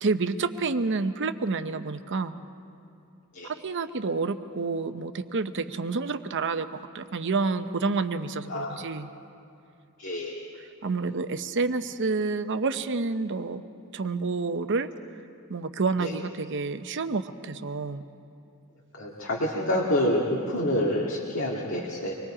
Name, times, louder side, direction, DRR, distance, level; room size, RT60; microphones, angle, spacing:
voice 1, 0.0-2.4 3.6-6.7 6.9-9.1 10.8-13.6 13.9-14.9 15.5-18.0, right 4 dB, 55° right, 10 dB, 0.7 m, -29 dB
voice 2, 8.5-9.0 10.0-10.4 16.0-16.1 19.0-22.2, left 1 dB, 60° left, -3 dB, 2.0 m, -27 dB
25.5 x 21.0 x 4.9 m, 2.7 s
head